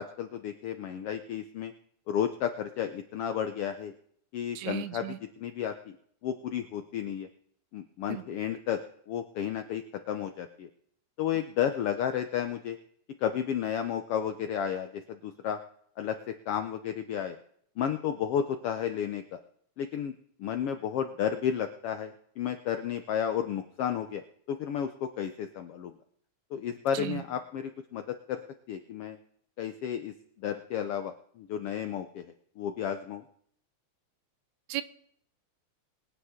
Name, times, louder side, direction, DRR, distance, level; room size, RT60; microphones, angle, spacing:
voice 1, 0.0-1.7 2.1-3.9 4.3-5.1 5.4-5.9 6.2-7.3 7.7-8.8 9.1-10.7 11.2-12.8 13.2-15.6 16.0-17.4 17.8-19.4 19.8-20.1 20.4-25.9 26.5-28.4 28.7-29.2 29.6-32.2 32.6-33.2, left 9 dB, 75° left, 8 dB, 1.3 m, -32 dB
voice 2, 4.6-5.2 8.1-8.2 26.9-27.2 34.7-34.8, right 15 dB, 80° right, 14 dB, 2.0 m, -35 dB
22.5 x 9.5 x 3.7 m, 0.65 s
omnidirectional pair, 3.4 m